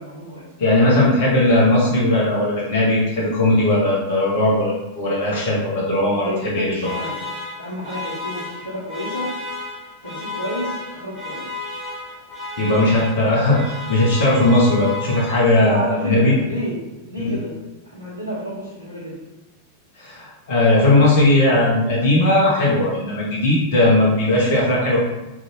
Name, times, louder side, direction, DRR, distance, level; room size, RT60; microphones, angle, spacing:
voice 1, 0.0-0.4 6.2-7.2 7.6-9.3 10.0-11.6 15.6-16.8 17.1-17.5 17.8-19.2, equal, 80° left, -10 dB, 0.8 m, -30 dB
voice 2, 0.6-6.8 12.6-16.4 17.2-17.4 20.0-25.0, left 1 dB, 50° left, -5 dB, 0.6 m, -18 dB
sound 1, 6.8-15.8, left 3 dB, 35° left, 1.1 m, -33 dB
2.5 x 2.3 x 2.9 m, 1.0 s
figure-of-eight pair, 90°, 0 cm